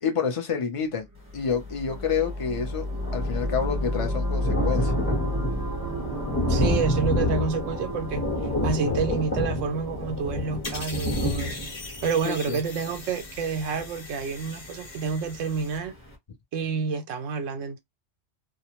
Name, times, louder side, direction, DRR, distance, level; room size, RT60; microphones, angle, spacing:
voice 1, 0.0-1.1 1.3-2.8 3.1-4.9 12.2-12.6, left 6 dB, 35° left, 0.6 m, -28 dB
sound 1, 1.1-10.0, left 1 dB, 30° right, 0.3 m, -31 dB
Thunder, 1.9-2.0 2.3-14.9 15.4-15.5 15.8-15.9, left 1 dB, 10° left, 0.9 m, -29 dB
voice 2, 6.5-8.2 8.6-11.7 12.0-15.9 16.5-17.8, right 5 dB, 90° right, 1.0 m, -29 dB
sound 2, 10.6-15.8, left 3 dB, 50° left, 1.0 m, -41 dB
2.5 x 2.1 x 2.9 m
omnidirectional pair, 1.3 m